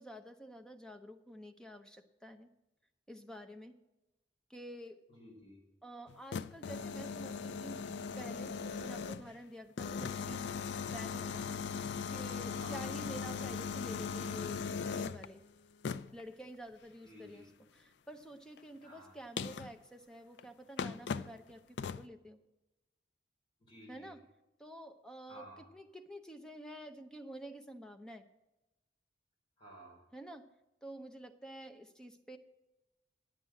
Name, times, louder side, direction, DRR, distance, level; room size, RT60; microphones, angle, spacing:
voice 1, 0.0-2.5 3.1-3.7 4.5-5.0 5.8-7.8 8.2-10.5 10.8-11.5 12.1-15.4 16.1-17.5 17.8-22.4 23.9-24.2 24.6-25.4 25.7-28.3 30.1-30.5 30.8-32.4, right 1 dB, 5° left, 6 dB, 0.7 m, -49 dB
voice 2, 5.1-5.6 12.5-12.9 17.0-17.5 18.8-19.2 23.7-24.2 25.3-25.7 29.6-30.0, right 1 dB, 30° left, -3 dB, 4.3 m, -54 dB
sound 1, 6.1-9.4 9.8-15.3 15.8-16.2 18.6-18.7 19.4-19.7 20.4-20.5 20.8-21.4 21.8-22.1, left 5 dB, 75° left, 0.4 m, -39 dB
9.9 x 7.5 x 7.5 m, 1.0 s
head